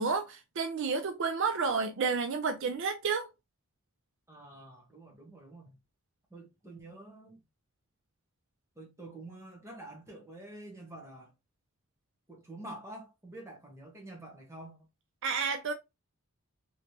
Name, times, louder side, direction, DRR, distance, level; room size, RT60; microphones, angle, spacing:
voice 1, 0.0-3.3 15.2-15.7, right 5 dB, 55° right, 0.4 m, -30 dB
voice 2, 4.3-5.8 6.3-7.4 8.8-11.3 12.3-14.9, right 1 dB, 15° right, 1.0 m, -48 dB
3.2 x 3.1 x 2.7 m
head